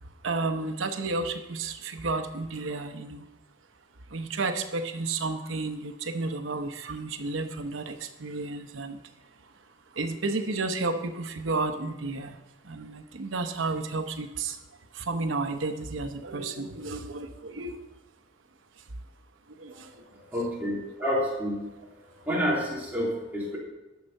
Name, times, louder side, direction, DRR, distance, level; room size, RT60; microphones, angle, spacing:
voice 1, 0.0-3.3 4.1-9.0 9.4-9.5 9.9-14.7 14.9-17.8 18.8-18.9 19.5-20.1, right 3 dB, 90° right, 8 dB, 0.9 m, -32 dB
voice 2, 20.1-21.6 22.3-23.6, equal, 10° right, -6 dB, 2.8 m, -29 dB
10.5 x 6.6 x 5.3 m, 1.0 s
head